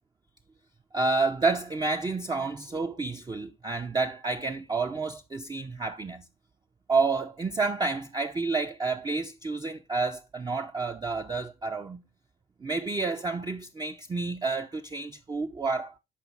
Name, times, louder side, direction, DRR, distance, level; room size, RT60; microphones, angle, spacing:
voice 1, 0.9-6.2 6.9-12.0 12.6-15.9, right 3 dB, 15° right, 0.5 m, -29 dB
7.1 x 5.0 x 4.6 m
figure-of-eight pair, 45°, 29 cm